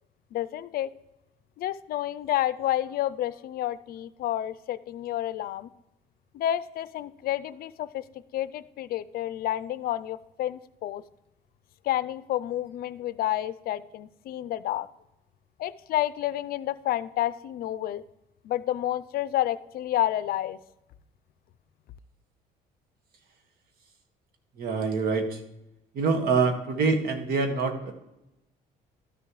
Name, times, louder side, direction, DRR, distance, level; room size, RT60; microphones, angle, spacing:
voice 1, 0.3-0.9 1.6-5.7 6.3-8.0 8.3-11.0 11.8-14.9 15.6-18.0 18.4-20.6, left 13 dB, 65° left, 16 dB, 0.4 m, -30 dB
voice 2, 24.6-25.4 25.9-27.9, right 4 dB, 65° right, 6 dB, 1.6 m, -25 dB
13.0 x 6.7 x 3.1 m, 0.90 s
cardioid pair, 110°, 17 cm